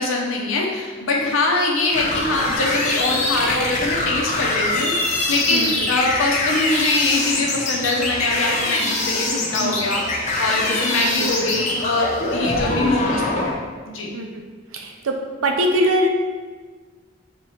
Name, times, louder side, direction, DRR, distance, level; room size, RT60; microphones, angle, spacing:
voice 1, 0.0-14.1, left 2 dB, 80° left, -1 dB, 0.7 m, -23 dB
sound 1, 1.9-13.5, left 2 dB, 35° left, 0.6 m, -23 dB
voice 2, 5.5-5.9 9.6-9.7 11.1-11.3 12.6-12.9 14.1-14.3 14.7-15.1 15.4-16.1, right 1 dB, 85° right, 3 dB, 0.5 m, -22 dB
3.6 x 2.9 x 4.2 m, 1.5 s
head